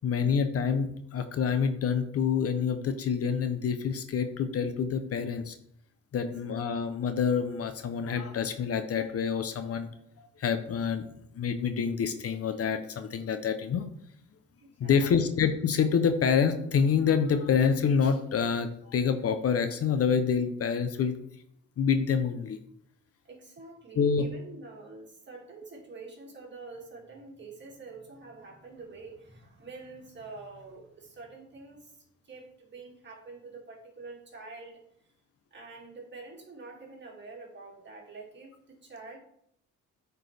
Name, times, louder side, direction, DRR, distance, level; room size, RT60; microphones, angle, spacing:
voice 1, 0.0-5.6 6.1-9.9 10.2-11.0 11.3-13.9 14.8-21.2 21.8-22.6 23.9-24.2, left 6 dB, 50° left, 9 dB, 0.7 m, -27 dB
voice 2, 14.6-15.3 23.2-34.8 35.5-39.2, right 3 dB, 35° right, -2 dB, 2.3 m, -47 dB
8.9 x 4.5 x 3.3 m, 0.71 s
cardioid pair, 90°, 30 cm